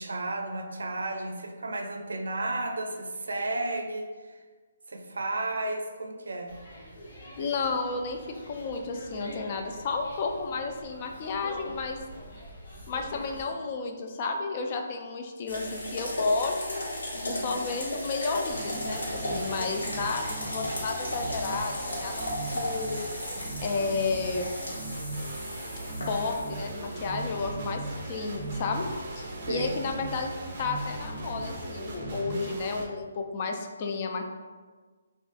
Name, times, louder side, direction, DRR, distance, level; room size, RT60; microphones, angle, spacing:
voice 1, 0.0-4.4 4.9-6.5 17.1-17.6 19.6-19.7 29.4-29.8, right 2 dB, 85° right, 3 dB, 0.4 m, -33 dB
sound 1, 6.5-13.5, equal, 50° left, 1.1 m, -45 dB
voice 2, 7.4-8.2 8.5-12.0 12.9-16.8 17.2-23.1 23.6-24.5 26.1-28.9 29.2-30.3 30.6-34.3, left 4 dB, 30° left, 3 dB, 0.3 m, -32 dB
sound 2, 15.5-32.0, left 1 dB, 90° left, 1.1 m, -37 dB
sound 3, 18.5-32.8, right 2 dB, 35° right, 0.5 m, -38 dB
3.5 x 2.3 x 2.5 m, 1.4 s
hypercardioid pair, 165°, 0 cm